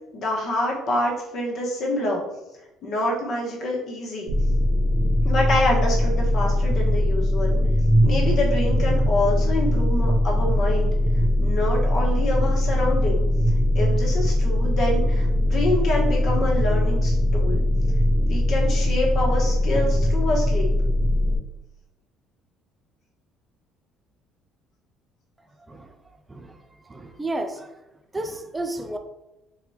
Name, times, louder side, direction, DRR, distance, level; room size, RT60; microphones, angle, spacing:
voice 1, 0.1-2.2 2.8-4.3 5.2-7.6 8.0-10.9 11.4-13.2 13.7-17.6 18.2-20.7, left 1 dB, 50° left, -2 dB, 1.1 m, -26 dB
sound 1, 4.3-21.4, left 1 dB, 45° right, 0.7 m, -21 dB
voice 2, 26.9-27.7 28.1-29.0, right 2 dB, 15° right, 6 dB, 0.4 m, -31 dB
4.2 x 3.3 x 2.7 m, 0.95 s
cardioid pair, 140°, 0 cm